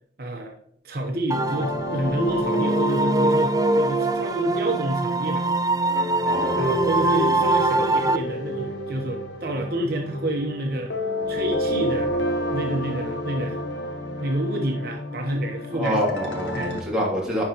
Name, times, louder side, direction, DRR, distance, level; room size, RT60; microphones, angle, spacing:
voice 1, 0.2-0.6 0.8-5.5 6.6-10.9 11.3-12.2 12.5-13.6 14.2-16.0 16.5-16.8, right 1 dB, 60° right, 2 dB, 1.0 m, -28 dB
sound 1, 1.3-16.8, left 1 dB, 85° left, 1.2 m, -30 dB
sound 2, 1.3-8.2, right 2 dB, 20° right, 0.3 m, -23 dB
voice 2, 6.2-6.7 15.7-17.4, equal, 5° right, -5 dB, 2.6 m, -26 dB
10.5 x 4.7 x 3.0 m, 0.65 s
head